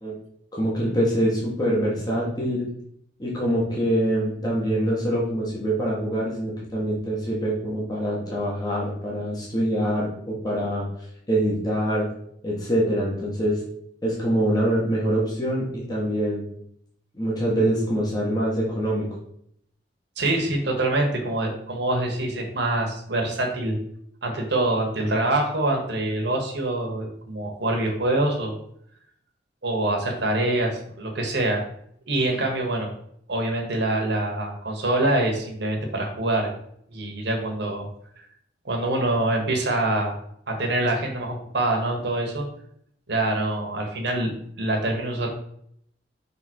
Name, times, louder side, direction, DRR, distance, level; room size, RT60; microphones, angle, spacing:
voice 1, 0.5-2.7 3.2-10.9 11.3-12.1 12.4-13.6 14.0-16.4 17.1-19.1, right 1 dB, 20° left, -5 dB, 1.5 m, -24 dB
voice 2, 20.2-23.8 24.2-28.5 29.6-31.6 32.1-32.9 33.3-36.5 36.9-37.9 38.6-40.1 40.5-42.4 43.1-45.3, right 2 dB, 65° right, 1 dB, 1.5 m, -25 dB
6.0 x 3.7 x 4.4 m, 0.70 s
head